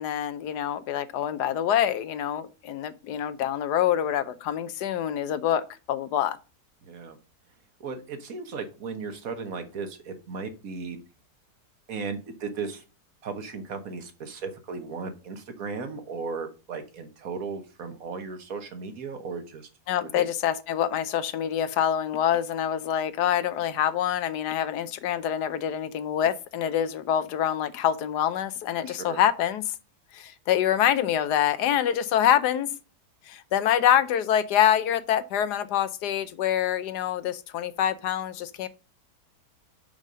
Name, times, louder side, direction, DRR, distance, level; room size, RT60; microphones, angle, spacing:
voice 1, 0.0-6.4 19.9-29.7 30.1-32.7 33.3-38.7, left 10 dB, 75° left, 1.2 m, -26 dB
voice 2, 6.8-7.2 7.8-11.0 11.9-12.8 13.2-19.7 20.0-20.3 28.9-29.2, right 4 dB, 60° right, 1.5 m, -36 dB
5.6 x 5.2 x 6.1 m
omnidirectional pair, 1.8 m